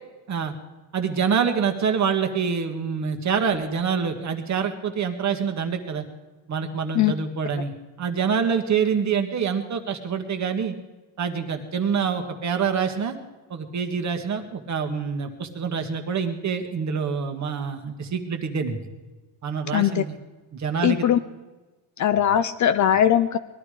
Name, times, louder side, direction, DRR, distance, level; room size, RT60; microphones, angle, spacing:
voice 1, 0.9-6.0 6.5-7.7 8.0-10.8 11.2-13.2 13.5-18.8 19.4-20.2 20.5-21.1, right 6 dB, 35° right, 5 dB, 1.8 m, -26 dB
voice 2, 19.7-20.0 20.8-21.2 22.0-23.4, left 10 dB, 40° left, 12 dB, 0.5 m, -20 dB
20.5 x 12.5 x 5.0 m, 1.2 s
cardioid pair, 135°, 47 cm